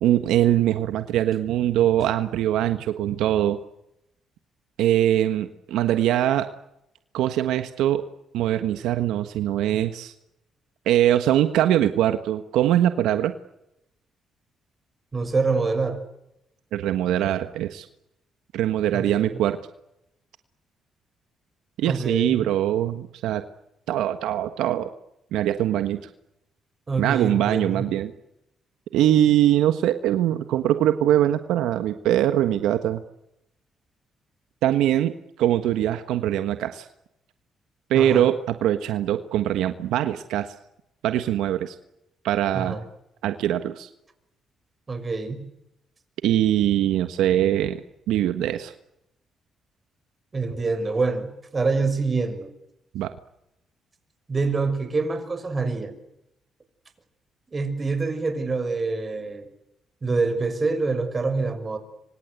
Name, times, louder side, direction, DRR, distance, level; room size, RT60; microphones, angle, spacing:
voice 1, 0.0-3.6 4.8-6.5 7.1-8.0 8.3-10.1 10.8-13.3 16.7-17.9 18.5-19.6 21.8-23.4 23.9-24.9 25.3-26.0 27.0-28.1 28.9-33.0 34.6-36.9 37.9-40.5 41.0-41.7 42.2-42.8 43.2-43.9 46.2-48.7 52.9-53.1, right 12 dB, 90° right, 9 dB, 1.5 m, -22 dB
voice 2, 15.1-16.0 18.9-19.4 21.8-22.4 26.9-27.8 37.9-38.3 42.5-42.8 44.9-45.5 50.3-52.5 54.3-55.9 57.5-59.5 60.0-61.8, right 4 dB, 30° right, 10 dB, 6.0 m, -26 dB
26.5 x 25.0 x 8.3 m, 0.83 s
cardioid pair, 90°, 0 cm